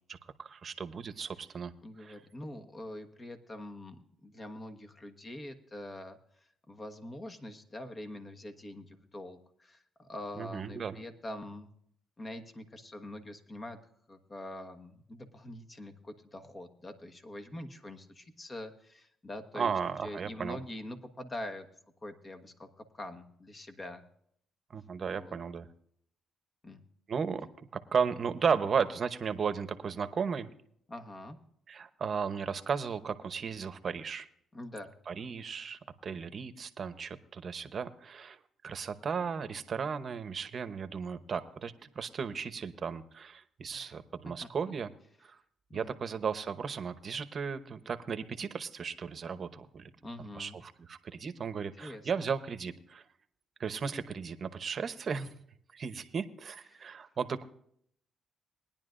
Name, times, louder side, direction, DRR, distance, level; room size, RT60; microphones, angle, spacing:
voice 1, 0.1-1.7 2.0-2.2 10.4-11.0 19.5-20.6 24.7-25.7 27.1-30.5 31.7-34.3 35.1-38.4 38.6-44.9 45.2-45.4 45.7-49.9 50.3-53.0 53.6-55.3 55.7-57.5, right 6 dB, 45° right, 11 dB, 0.9 m, -35 dB
voice 2, 1.8-6.2 6.7-11.7 12.2-13.8 14.1-19.7 20.0-21.7 22.0-24.0 25.1-25.4 26.6-26.8 30.9-31.4 34.5-34.9 43.7-44.0 44.4-44.5 45.7-46.0 50.0-50.6 51.8-52.3 56.7-57.1, left 1 dB, 30° left, 6 dB, 1.4 m, -44 dB
20.0 x 10.5 x 2.6 m, 0.67 s
cardioid pair, 90°, 0 cm